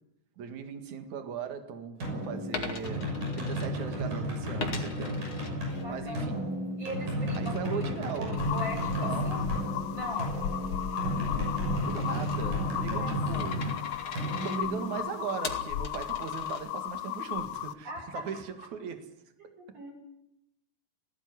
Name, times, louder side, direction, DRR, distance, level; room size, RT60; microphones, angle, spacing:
voice 1, 0.4-5.3 5.9-6.5 7.4-8.4 8.9-9.5 11.3-13.8 14.4-19.0 19.7-19.9, right 7 dB, 65° right, 7 dB, 3.4 m, -39 dB
sound 1, 2.0-15.6, equal, 80° right, 8.4 m, -33 dB
Coin (dropping), 2.4-4.1 4.6-6.2 6.6-17.0, left 4 dB, 45° left, 2.9 m, -43 dB
voice 2, 5.7-6.3 6.8-7.8 8.2-9.5 9.9-10.3 12.9-13.1 13.5-13.6 17.8-18.2 19.4-19.9, equal, 50° right, -2 dB, 7.5 m, -40 dB
sound 2, 8.4-17.7, left 11 dB, 65° left, 1.9 m, -35 dB
19.5 x 16.5 x 9.9 m, 0.86 s
omnidirectional pair, 3.7 m